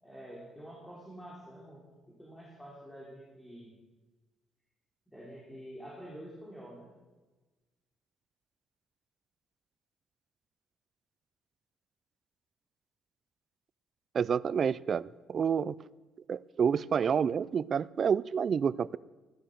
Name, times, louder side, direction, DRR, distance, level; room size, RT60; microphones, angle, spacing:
voice 1, 0.0-3.7 5.1-6.9, equal, 5° left, -4 dB, 3.3 m, -48 dB
voice 2, 14.1-15.8 16.3-19.0, right 7 dB, 45° right, 20 dB, 0.4 m, -29 dB
15.5 x 11.5 x 6.5 m, 1.2 s
cardioid pair, 125°, 0 cm